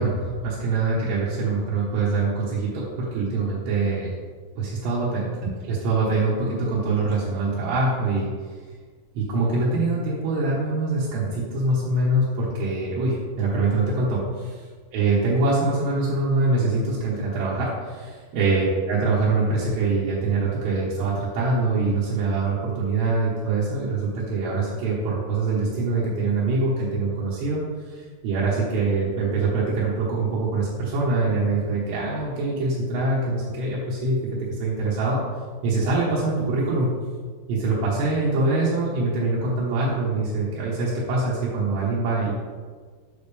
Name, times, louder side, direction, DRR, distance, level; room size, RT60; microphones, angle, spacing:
voice 1, 0.0-4.1 4.6-5.3 5.6-8.3 9.2-14.2 14.9-35.2 35.6-36.9 37.5-42.3, right 3 dB, 85° right, -9 dB, 3.5 m, -24 dB
8.1 x 6.8 x 3.4 m, 1.5 s
omnidirectional pair, 4.8 m